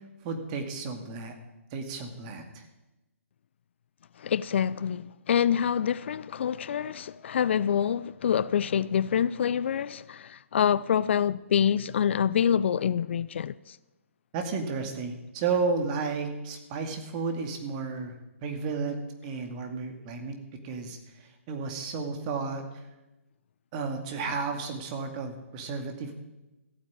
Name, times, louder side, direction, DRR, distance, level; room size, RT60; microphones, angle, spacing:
voice 1, 0.2-1.3 1.7-2.7 14.3-18.1 18.4-20.4 20.6-21.0 21.5-22.6 23.7-26.2, right 4 dB, 30° right, 2.3 m, -32 dB
voice 2, 4.2-13.8, left 8 dB, 55° left, 0.4 m, -26 dB
15.0 x 8.9 x 8.7 m
hypercardioid pair, 145°, 8 cm